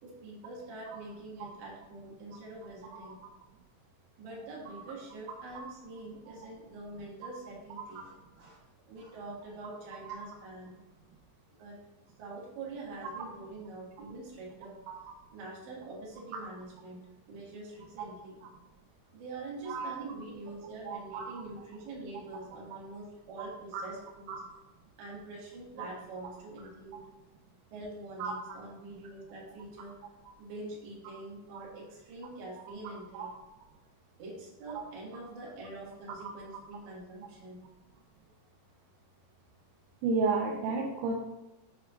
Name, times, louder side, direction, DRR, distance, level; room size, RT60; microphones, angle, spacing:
voice 1, 0.0-3.2 4.2-8.6 8.9-10.8 11.6-11.8 12.2-14.8 15.3-17.0 17.3-18.4 19.1-24.3 25.0-27.0 27.7-30.0 30.4-33.3 34.2-37.7, right 2 dB, 65° right, -4 dB, 3.8 m, -45 dB
voice 2, 20.9-21.3 22.7-22.8 23.7-23.8 24.3-24.4 28.2-28.3 31.5-31.6 33.1-33.3 36.2-36.3 40.0-41.1, right 4 dB, 85° right, 0 dB, 3.3 m, -32 dB
10.5 x 4.4 x 2.5 m, 1.0 s
omnidirectional pair, 5.8 m